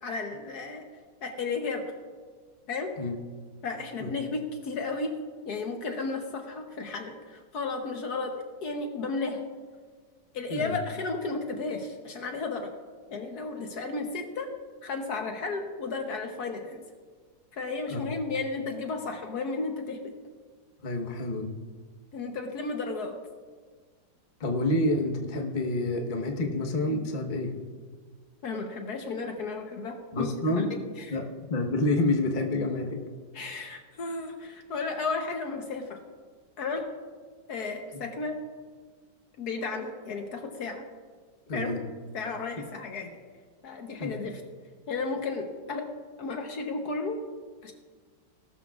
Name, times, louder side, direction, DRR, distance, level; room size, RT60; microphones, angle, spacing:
voice 1, 0.0-0.8 1.2-1.9 2.7-2.9 3.6-5.1 5.4-9.4 10.3-12.7 13.1-14.5 14.8-16.8 17.5-20.1 22.1-23.2 28.4-30.3 30.5-31.2 33.3-36.0 36.6-36.9 37.5-38.4 39.4-40.8 41.5-41.8 42.1-43.1 43.6-44.4 44.9-45.9 46.2-47.2 47.6-47.7, left 3 dB, 60° left, 4 dB, 1.4 m, -33 dB
voice 2, 20.8-21.5 24.4-27.5 30.1-30.8 31.1-33.0 41.5-41.8 44.0-44.1, left 2 dB, 30° left, 2 dB, 1.1 m, -28 dB
18.5 x 12.5 x 2.4 m, 1.5 s
omnidirectional pair, 2.0 m